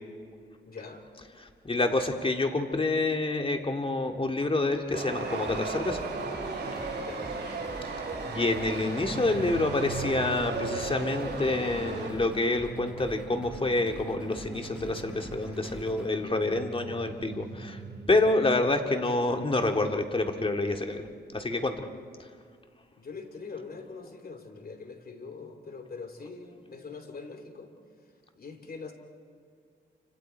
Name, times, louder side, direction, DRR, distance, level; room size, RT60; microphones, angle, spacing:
voice 1, 0.7-1.0 7.0-7.3 23.0-27.7 28.3-28.9, left 4 dB, 50° left, 6 dB, 3.0 m, -43 dB
voice 2, 1.6-6.0 7.8-17.8 18.1-21.0 21.3-21.8, left 2 dB, 30° left, 4 dB, 2.1 m, -28 dB
Chatter / Subway metro underground, 4.9-12.1, right 3 dB, 60° right, 6.6 m, -35 dB
sound 1, 5.2-17.3, right 1 dB, 5° right, 2.3 m, -47 dB
sound 2, 8.5-18.4, right 4 dB, 85° right, 3.3 m, -43 dB
29.0 x 26.5 x 4.6 m, 2.1 s
cardioid pair, 75°, 19 cm